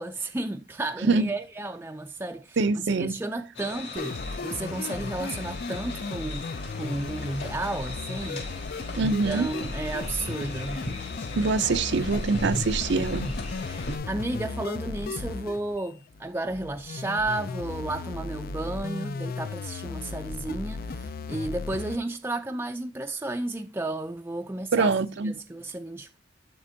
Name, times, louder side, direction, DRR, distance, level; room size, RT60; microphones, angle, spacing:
voice 1, 0.0-6.5 6.7-10.8 13.1-24.9 25.2-26.2, right 2 dB, 10° right, 0.4 m, -33 dB
voice 2, 2.6-3.1 8.9-9.5 11.4-13.3 24.7-25.3, right 4 dB, 65° right, 0.5 m, -24 dB
sound 1, 3.5-14.0, left 2 dB, 70° left, 4.0 m, -37 dB
sound 2, 4.0-22.0, left 4 dB, 50° left, 0.4 m, -36 dB
12.5 x 4.4 x 2.7 m
head